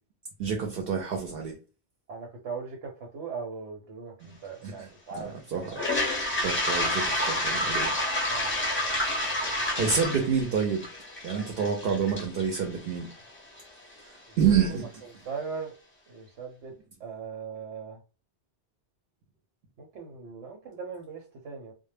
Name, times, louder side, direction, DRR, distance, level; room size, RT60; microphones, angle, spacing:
voice 1, 0.4-1.6 4.2-4.4 4.6-5.8 6.4-7.9 9.8-10.9 11.2-13.1 14.0-14.9, right 6 dB, 60° right, 0.7 m, -28 dB
voice 2, 2.1-5.8 8.3-8.5 14.3-14.7 15.3-15.7 16.1-16.7 17.0-18.0 19.8-21.7, right 5 dB, 85° right, 1.0 m, -39 dB
Toilet flush, 5.7-13.6, left 1 dB, 15° left, 0.5 m, -29 dB
2.1 x 2.0 x 3.2 m
omnidirectional pair, 1.2 m